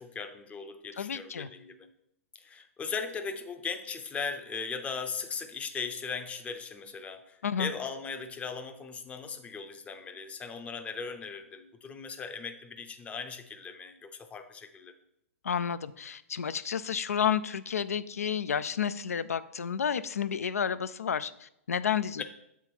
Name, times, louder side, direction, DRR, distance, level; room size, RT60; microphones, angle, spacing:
voice 1, 0.0-1.9 2.4-14.9 22.2-22.3, left 5 dB, 15° left, 7 dB, 0.5 m, -38 dB
voice 2, 1.0-1.5 7.4-7.7 15.4-22.2, left 8 dB, 90° left, 14 dB, 0.3 m, -31 dB
7.2 x 3.5 x 4.5 m, 0.78 s
hypercardioid pair, 125°, 8 cm